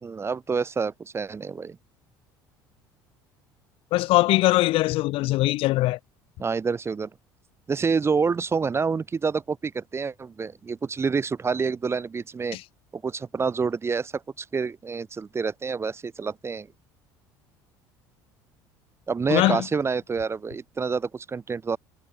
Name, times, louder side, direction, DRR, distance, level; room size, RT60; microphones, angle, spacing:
voice 1, 0.0-1.8 6.4-7.1 7.7-12.6 12.9-16.7 19.1-21.8, right 5 dB, 25° right, 0.6 m, -27 dB
voice 2, 3.9-6.0 12.5-12.6 19.3-19.7, left 18 dB, 60° left, 0.6 m, -21 dB
hypercardioid pair, 70°, 10 cm